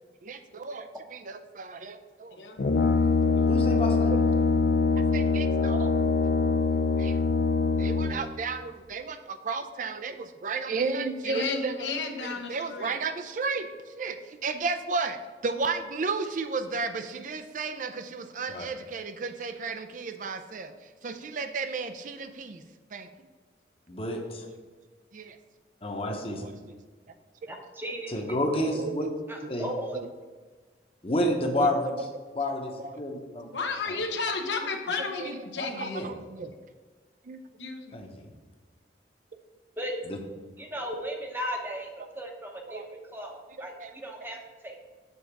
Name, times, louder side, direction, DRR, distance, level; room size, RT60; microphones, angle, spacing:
voice 1, 0.2-2.4 5.1-5.9 7.0-7.2 7.8-11.9 12.5-13.7 14.0-20.7 21.0-22.6 22.9-23.1 25.1-25.4 26.3-26.8 28.7-29.1 29.4-29.5 29.9-30.1 31.6-31.7 32.0-32.1 32.8-33.1 35.2-35.3 35.8-36.5 37.3-37.4 42.7-42.8 43.6-43.9, right 4 dB, 45° right, 9 dB, 0.4 m, -33 dB
Brass instrument, 2.6-8.4, left 4 dB, 55° left, 0.4 m, -24 dB
voice 2, 3.5-4.1 18.5-18.7 23.9-24.4 25.8-26.4 28.1-29.0 29.5-29.7 31.0-31.9 32.4-33.4 35.6-36.1 37.9-38.2 40.1-40.2, left 1 dB, 30° left, 2 dB, 0.9 m, -29 dB
voice 3, 11.2-13.0 33.4-36.1 37.6-38.0, left 4 dB, 85° left, 4 dB, 0.9 m, -33 dB
voice 4, 27.5-28.4 29.3-30.0 39.8-39.9 40.6-42.8 43.1-44.9, equal, 10° right, 2 dB, 0.7 m, -36 dB
7.1 x 3.8 x 5.9 m, 1.4 s
head